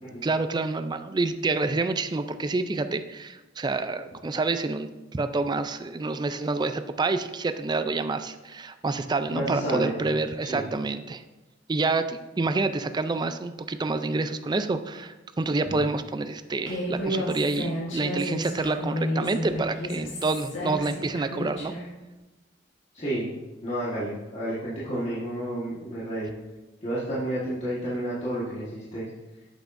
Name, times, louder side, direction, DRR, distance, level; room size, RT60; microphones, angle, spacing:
voice 1, 0.2-11.2 11.7-21.7, right 3 dB, 25° right, 10 dB, 0.4 m, -28 dB
voice 2, 9.3-9.9 10.5-10.7 15.7-15.8 22.9-23.3 23.6-26.3 26.8-29.1, right 1 dB, 35° left, -9 dB, 1.5 m, -30 dB
Human voice, 16.7-21.9, equal, 90° left, 2.0 m, -31 dB
8.2 x 8.1 x 2.6 m, 1.1 s
head